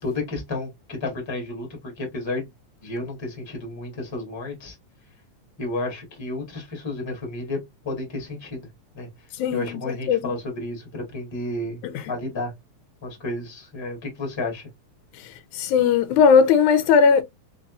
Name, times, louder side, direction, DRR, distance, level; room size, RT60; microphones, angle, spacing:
voice 1, 0.0-2.5 2.8-4.8 5.6-7.6 7.8-8.7 8.9-9.1 9.5-11.8 12.1-12.5 13.0-14.7, left 2 dB, 10° left, 1.2 m, -31 dB
voice 2, 9.4-10.2 15.5-17.2, left 6 dB, 85° left, 2.0 m, -18 dB
4.0 x 3.9 x 2.5 m
omnidirectional pair, 3.5 m